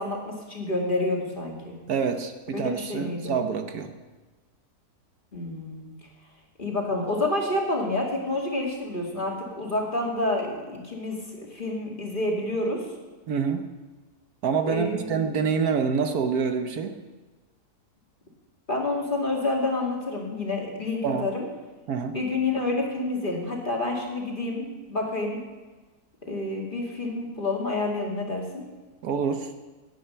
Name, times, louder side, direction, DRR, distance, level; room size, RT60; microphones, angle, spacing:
voice 1, 0.0-1.7 2.5-3.4 5.3-5.9 6.6-12.8 14.7-15.4 18.7-21.4 22.1-25.4 26.3-28.6, left 2 dB, 30° left, -1 dB, 2.6 m, -28 dB
voice 2, 1.9-3.9 13.3-13.6 14.4-17.0 21.0-21.3 21.9-22.2 29.0-29.5, right 6 dB, 70° right, 7 dB, 1.4 m, -26 dB
18.0 x 9.4 x 5.7 m, 1.2 s
omnidirectional pair, 1.7 m